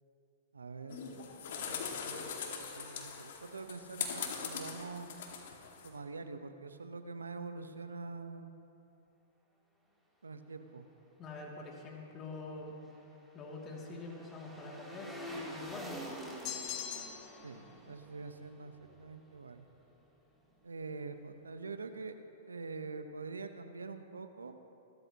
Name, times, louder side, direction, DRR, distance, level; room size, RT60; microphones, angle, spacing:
voice 1, 0.5-1.0 1.6-5.1 5.8-8.5 10.2-10.9 17.4-19.7 20.6-22.2 22.5-24.5, right 4 dB, 90° right, 8 dB, 1.0 m, -45 dB
sound 1, 0.9-5.9, left 6 dB, 65° left, 2.2 m, -41 dB
voice 2, 11.2-12.8 13.3-16.0, left 3 dB, 25° left, -2 dB, 2.7 m, -45 dB
sound 2, 12.4-19.6 19.9-20.0, equal, ahead, 3.4 m, -48 dB
sound 3, 16.4-17.4, left 10 dB, 45° left, 1.5 m, -41 dB
26.0 x 13.0 x 3.1 m, 2.8 s
hypercardioid pair, 115°, 0 cm